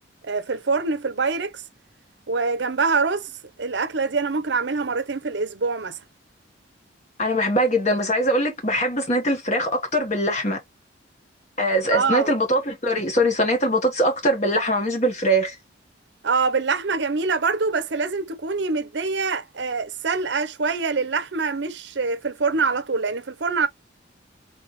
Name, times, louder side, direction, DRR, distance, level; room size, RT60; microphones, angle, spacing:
voice 1, 0.2-1.6 2.3-3.3 3.6-6.0 11.9-12.3 16.2-23.7, right 4 dB, 65° right, 0.7 m, -24 dB
voice 2, 7.2-10.6 11.6-15.5, equal, 35° left, 1.3 m, -22 dB
4.1 x 3.5 x 3.0 m
head